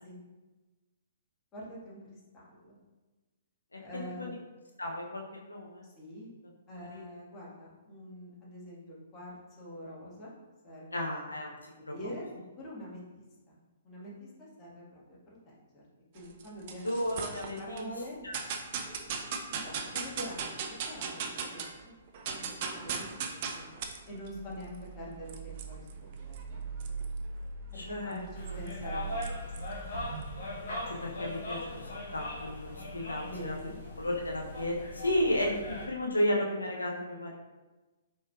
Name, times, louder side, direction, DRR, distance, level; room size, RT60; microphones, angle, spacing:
voice 1, 1.5-2.8 3.8-4.3 5.8-6.3 6.7-10.4 10.6-11.4 11.9-12.2 12.6-13.6 13.8-15.8 16.1-17.1 17.6-18.2 19.5-21.9 22.2-22.5 22.7-23.7 24.1-26.6 27.7-29.8 33.2-33.8, equal, 25° left, -6 dB, 1.3 m, -45 dB
voice 2, 4.8-5.9 6.8-7.0 10.9-11.5 11.9-12.0 16.8-17.9 18.2-18.4 27.7-28.6 30.9-33.5 34.0-37.4, left 1 dB, 85° left, -1 dB, 0.5 m, -33 dB
sound 1, 16.2-17.8 18.3-21.8 22.1-30.6, right 5 dB, 45° right, 0.4 m, -39 dB
sound 2, 28.3-35.9, left 1 dB, 60° left, 1.1 m, -40 dB
4.6 x 3.1 x 2.2 m, 1.2 s
figure-of-eight pair, 125°, 0 cm